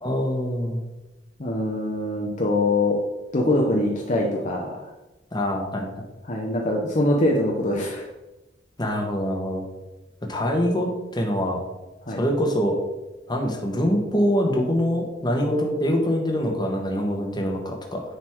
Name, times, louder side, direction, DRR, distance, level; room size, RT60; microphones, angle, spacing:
voice 1, 0.0-0.8 5.3-5.9 8.8-9.6 10.3-11.6 12.1-12.8 13.3-18.0, equal, 25° left, 1 dB, 1.4 m, -24 dB
voice 2, 1.4-3.0 3.3-4.9 6.2-8.1 12.0-12.2, left 1 dB, 45° left, -1 dB, 0.9 m, -23 dB
9.5 x 4.1 x 4.5 m, 1.0 s
head